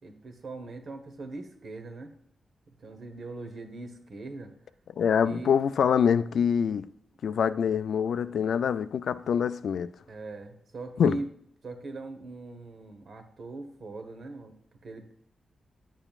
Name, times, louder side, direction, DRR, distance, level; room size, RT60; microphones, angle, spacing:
voice 1, 0.0-2.1 2.8-4.5 5.2-5.5 10.1-11.3 11.6-14.5 14.8-15.1, right 2 dB, 55° right, 1.2 m, -40 dB
voice 2, 5.0-6.9 7.2-9.9 11.0-11.2, left 7 dB, 80° left, 0.4 m, -25 dB
9.9 x 8.9 x 2.4 m
wide cardioid pair, 145°, 0 cm